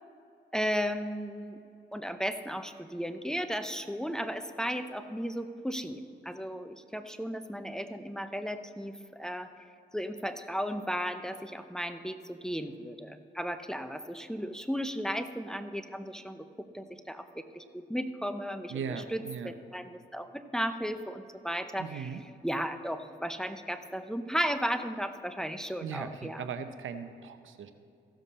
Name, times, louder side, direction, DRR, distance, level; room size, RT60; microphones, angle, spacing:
voice 1, 0.5-1.6 1.9-9.5 9.9-18.7 19.1-22.1 22.4-26.5, equal, 5° left, 8 dB, 0.7 m, -35 dB
voice 2, 18.7-19.5 21.8-22.2 25.8-27.7, right 6 dB, 80° right, 9 dB, 0.7 m, -38 dB
15.5 x 7.2 x 4.2 m, 2.5 s
cardioid pair, 65°, 20 cm